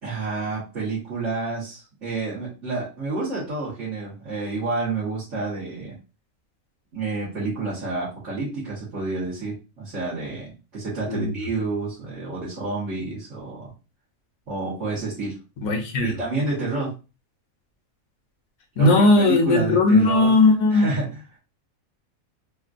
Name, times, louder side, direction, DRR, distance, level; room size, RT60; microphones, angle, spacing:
voice 1, 0.0-5.9 6.9-13.7 14.5-15.3 16.0-16.9 18.7-20.3 20.7-21.2, right 3 dB, 55° right, -11 dB, 1.7 m, -29 dB
voice 2, 15.6-16.1 18.8-20.9, left 2 dB, 75° left, 4 dB, 1.1 m, -17 dB
3.7 x 2.4 x 2.5 m, 0.31 s
omnidirectional pair, 1.5 m